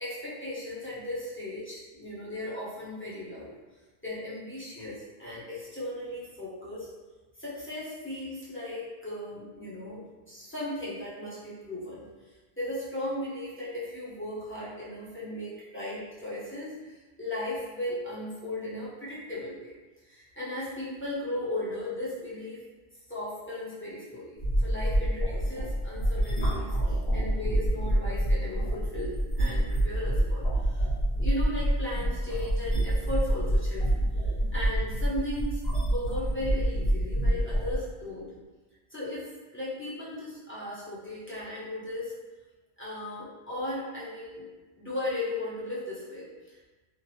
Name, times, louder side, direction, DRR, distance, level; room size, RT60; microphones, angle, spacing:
voice 1, 0.0-3.6 4.0-6.9 7.4-10.0 10.3-12.1 12.6-19.7 20.0-22.6 23.1-30.9 31.2-33.9 34.2-38.3 38.9-42.1 42.8-44.4 44.8-46.6, left 1 dB, 15° left, -9 dB, 0.6 m, -36 dB
sound 1, 24.4-37.8, right 1 dB, 75° left, 1.5 m, -27 dB
3.0 x 2.0 x 2.7 m, 1.2 s
omnidirectional pair, 1.1 m